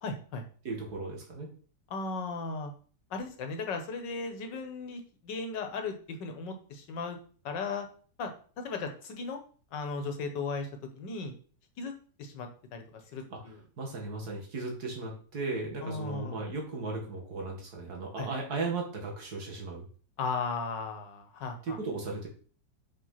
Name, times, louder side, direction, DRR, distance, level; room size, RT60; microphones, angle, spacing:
voice 1, 0.0-0.4 1.9-2.7 3.1-7.2 7.5-7.9 8.2-8.3 8.6-9.4 9.7-10.7 11.0-11.3 11.8-11.9 12.2-12.8 13.1-13.6 15.8-16.4 18.2-18.3 20.2-21.8, left 4 dB, 85° left, 5 dB, 1.9 m, -36 dB
voice 2, 0.6-1.5 13.3-13.4 13.8-19.8 21.6-22.3, right 3 dB, 60° right, 0 dB, 2.6 m, -36 dB
5.7 x 5.6 x 5.7 m, 0.43 s
omnidirectional pair, 1.9 m